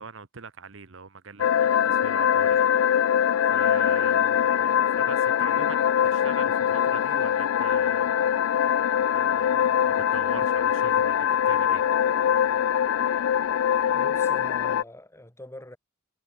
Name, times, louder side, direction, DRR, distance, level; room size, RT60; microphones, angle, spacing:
voice 1, 0.0-2.7 3.1-8.5 9.0-11.8, right 5 dB, 65° right, 0.9 m, -42 dB
sound 1, 1.4-14.8, left 9 dB, 80° left, 0.3 m, -23 dB
voice 2, 13.9-15.8, left 1 dB, 15° left, 1.9 m, -43 dB
head